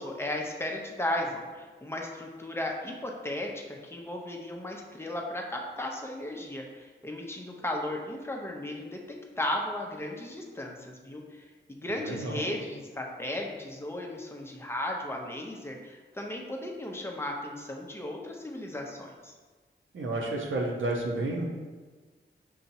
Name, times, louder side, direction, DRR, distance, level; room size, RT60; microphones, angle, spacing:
voice 1, 0.0-19.3, left 1 dB, 10° left, 0 dB, 0.7 m, -35 dB
voice 2, 11.9-12.4 19.9-21.5, right 2 dB, 75° right, 0 dB, 0.8 m, -31 dB
5.5 x 2.8 x 2.7 m, 1.4 s
cardioid pair, 60°, 20 cm